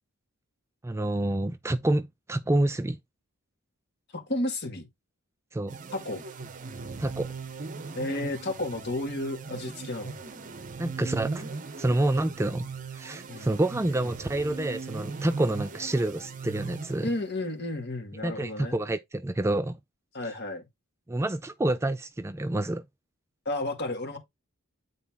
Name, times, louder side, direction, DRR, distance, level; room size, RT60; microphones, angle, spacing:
voice 1, 0.8-3.0 5.5-5.8 7.0-7.3 10.8-11.5 11.8-12.7 12.9-17.1 18.2-19.8 21.1-22.8, right 1 dB, 10° right, 0.3 m, -28 dB
voice 2, 4.1-4.9 5.9-6.2 7.9-10.2 13.3-13.5 17.0-18.8 20.1-20.7 23.5-24.2, left 2 dB, 50° left, 2.0 m, -32 dB
sound 1, 5.7-17.5, right 4 dB, 35° right, 0.8 m, -39 dB
9.1 x 4.0 x 3.6 m
head